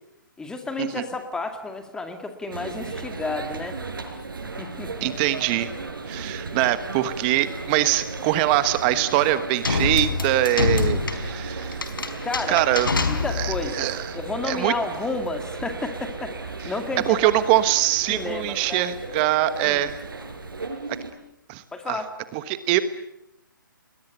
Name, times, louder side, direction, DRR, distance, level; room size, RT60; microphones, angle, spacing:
voice 1, 0.4-3.8 4.6-5.1 12.2-12.6 13.0-13.9 14.1-16.3 16.6-17.3 18.1-18.8 19.6-19.8 21.7-22.1, left 3 dB, 5° left, 6 dB, 2.0 m, -31 dB
sound 1, 2.5-21.1, right 3 dB, 80° right, 6.5 m, -35 dB
voice 2, 5.0-5.7 6.1-11.9 12.5-12.9 13.3-14.2 14.4-14.7 16.6-16.7 17.1-20.0 21.5-22.0 22.3-22.8, right 14 dB, 25° right, 12 dB, 1.3 m, -23 dB
sound 2, 9.6-13.7, left 4 dB, 80° left, 4.5 m, -26 dB
29.5 x 21.5 x 8.2 m, 0.81 s
hypercardioid pair, 145°, 11 cm